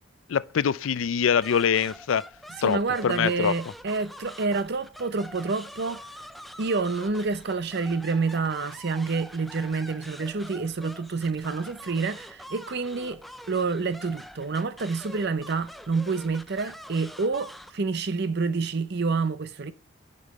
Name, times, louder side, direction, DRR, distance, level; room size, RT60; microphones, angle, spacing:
voice 1, 0.3-2.2 2.6-3.6, left 7 dB, 75° left, 0.4 m, -24 dB
sound 1, 1.4-17.7, equal, ahead, 0.3 m, -45 dB
voice 2, 2.6-6.0 6.6-13.2 13.5-19.7, right 4 dB, 50° right, 0.6 m, -28 dB
9.7 x 5.4 x 4.1 m
head